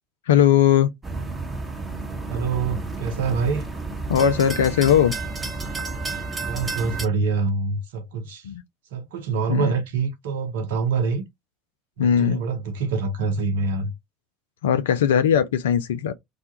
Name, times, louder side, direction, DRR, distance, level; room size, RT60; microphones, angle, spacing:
voice 1, 0.3-0.9 4.1-5.1 8.4-8.6 9.5-9.8 12.0-12.4 14.6-16.1, left 9 dB, 75° left, 0.4 m, -19 dB
sound 1, 1.0-7.1, right 3 dB, 20° right, 0.9 m, -31 dB
voice 2, 2.3-3.6 6.3-8.5 8.9-11.2 12.0-13.9, right 4 dB, 70° right, 0.8 m, -25 dB
2.4 x 2.1 x 2.7 m
figure-of-eight pair, 65°, 0 cm